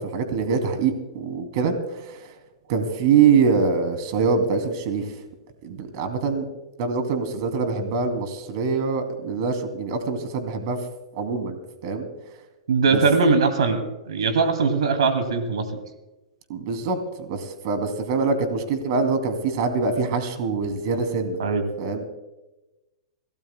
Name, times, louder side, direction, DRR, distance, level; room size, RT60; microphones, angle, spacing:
voice 1, 0.0-2.2 2.7-5.1 5.6-6.4 6.8-10.8 11.1-11.6 11.8-12.1 12.9-13.0 16.5-21.4 21.8-22.1, right 5 dB, 55° right, 7 dB, 2.7 m, -24 dB
voice 2, 12.7-15.7 21.4-21.6, right 4 dB, 85° right, 7 dB, 2.4 m, -21 dB
25.0 x 17.5 x 2.2 m, 1.0 s
hypercardioid pair, 135°, 3 cm